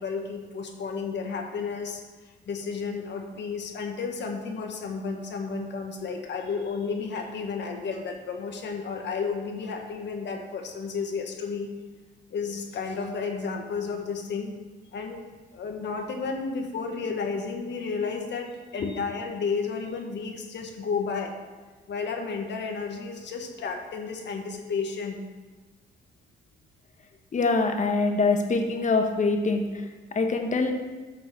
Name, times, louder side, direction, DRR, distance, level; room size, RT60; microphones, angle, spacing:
voice 1, 0.0-2.0 2.4-11.7 12.3-14.5 14.9-15.2 15.5-21.3 21.9-25.2, left 5 dB, 60° left, 3 dB, 1.7 m, -32 dB
voice 2, 27.3-30.7, left 3 dB, 40° left, 4 dB, 1.4 m, -24 dB
10.0 x 6.1 x 6.1 m, 1.3 s
cardioid pair, 90°, 20 cm